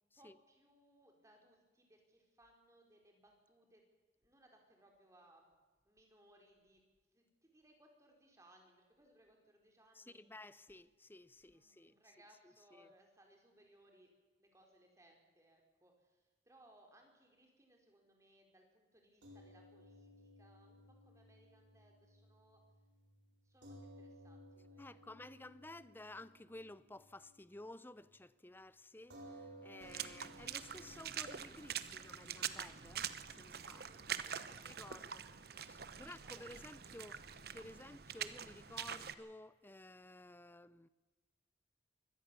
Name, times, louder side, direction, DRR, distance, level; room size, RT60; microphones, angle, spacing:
voice 1, 0.1-3.8 4.2-5.5 5.8-6.8 7.1-10.2 11.4-14.1 14.4-22.6 23.4-25.1 33.6-35.3 35.8-36.4, right 1 dB, 15° right, 4.3 m, -67 dB
voice 2, 9.9-12.0 12.4-12.9 24.8-34.1 34.6-35.2 35.6-40.9, left 2 dB, 10° left, 0.6 m, -54 dB
sound 1, 19.2-27.7 28.0-28.2 29.1-35.6, equal, 85° right, 4.6 m, -60 dB
Water / Splash splatter, 29.8-39.1, right 8 dB, 60° right, 1.0 m, -45 dB
24.0 x 17.5 x 7.0 m
head